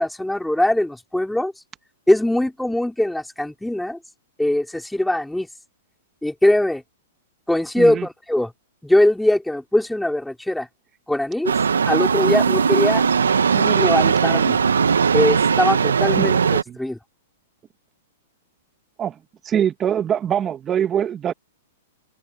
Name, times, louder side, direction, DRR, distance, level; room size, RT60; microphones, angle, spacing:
voice 1, 0.0-1.5 2.1-4.0 4.4-5.5 6.2-6.8 7.5-8.5 8.8-10.7 11.1-11.5 11.9-13.0 13.5-14.6 15.1-17.0, left 1 dB, 5° left, 3.8 m, -21 dB
sound 1, 11.5-16.6, right 6 dB, 90° right, 2.0 m, -19 dB
voice 2, 19.4-21.3, right 9 dB, 25° right, 1.8 m, -23 dB
open air
hypercardioid pair, 125°, 0 cm